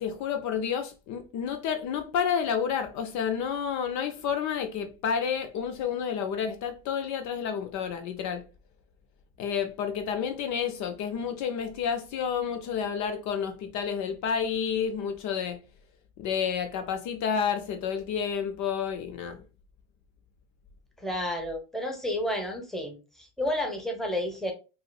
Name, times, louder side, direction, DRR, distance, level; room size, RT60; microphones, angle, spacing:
voice 1, 0.0-8.5 9.4-15.6 16.2-19.4, left 7 dB, 60° left, 0.6 m, -30 dB
voice 2, 21.0-24.5, left 1 dB, ahead, 1.0 m, -31 dB
4.9 x 2.0 x 2.3 m
supercardioid pair, 80°, 34 cm